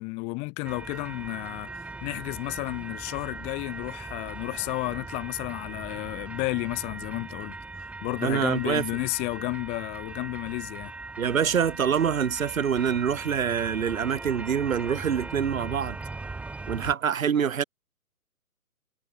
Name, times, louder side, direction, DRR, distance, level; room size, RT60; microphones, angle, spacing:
voice 1, 0.0-7.5 8.0-10.9, left 30 dB, 15° left, 1.3 m, -32 dB
sound 1, 0.6-16.9, right 3 dB, 5° right, 1.6 m, -39 dB
voice 2, 8.2-8.8 11.2-16.0 16.7-17.6, right 7 dB, 65° right, 0.8 m, -25 dB
figure-of-eight pair, 135°, 44 cm